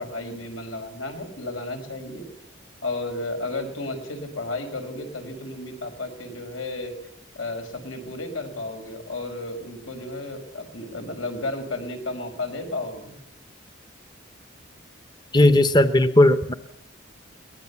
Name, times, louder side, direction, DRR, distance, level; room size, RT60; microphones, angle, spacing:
voice 1, 0.0-2.3 2.8-6.9 7.3-13.2, left 2 dB, 90° left, 5 dB, 5.1 m, -33 dB
voice 2, 15.3-16.5, left 1 dB, 20° left, 11 dB, 0.8 m, -16 dB
23.0 x 19.5 x 7.0 m, 0.73 s
head